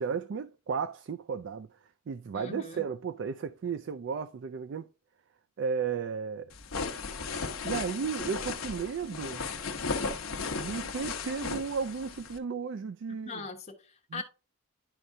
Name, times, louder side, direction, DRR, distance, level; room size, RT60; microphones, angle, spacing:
voice 1, 0.0-1.7 2.1-4.9 5.6-6.5 7.6-9.5 10.6-13.4 14.1-14.2, right 6 dB, 55° right, 0.3 m, -34 dB
voice 2, 2.3-2.8 13.2-14.2, left 3 dB, 30° left, 1.2 m, -40 dB
sound 1, 6.5-12.4, left 4 dB, 70° left, 0.9 m, -35 dB
11.0 x 4.4 x 2.6 m
head